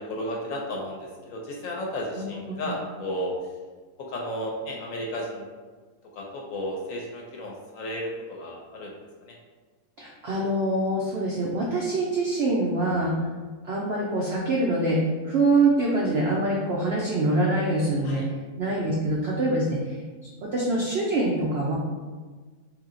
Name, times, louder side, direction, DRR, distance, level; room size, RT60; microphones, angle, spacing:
voice 1, 0.0-3.5 4.0-5.5 6.1-9.4 18.0-18.3 18.8-19.0, equal, 65° left, -1 dB, 0.9 m, -33 dB
voice 2, 10.0-13.1 13.6-18.2 18.6-20.0 20.4-21.7, right 2 dB, 75° right, -3 dB, 0.5 m, -24 dB
3.2 x 2.7 x 3.7 m, 1.4 s
omnidirectional pair, 1.7 m